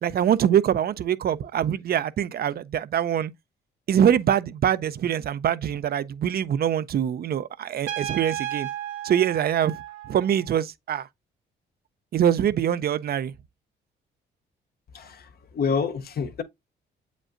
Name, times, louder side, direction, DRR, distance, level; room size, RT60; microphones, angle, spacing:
voice 1, 0.0-3.3 3.9-8.7 9.0-9.8 10.1-11.1 12.1-13.3, right 9 dB, 50° right, 0.5 m, -24 dB
Trumpet, 7.9-10.5, right 12 dB, 85° right, 1.1 m, -34 dB
voice 2, 14.9-16.4, left 6 dB, 50° left, 0.8 m, -28 dB
7.5 x 5.1 x 2.5 m
cardioid pair, 90°, 20 cm